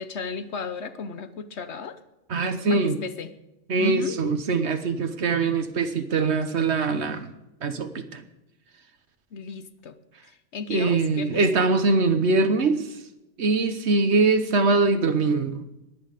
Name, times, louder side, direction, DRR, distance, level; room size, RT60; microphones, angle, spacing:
voice 1, 0.0-2.0 2.7-3.3 3.8-4.4 9.3-10.0 10.3-11.4, left 5 dB, 65° left, 11 dB, 1.2 m, -34 dB
voice 2, 2.3-3.0 3.7-7.3 7.6-8.2 10.7-12.8 13.4-15.6, right 3 dB, 65° right, 10 dB, 1.3 m, -22 dB
21.5 x 8.7 x 5.1 m, 0.96 s
omnidirectional pair, 1.3 m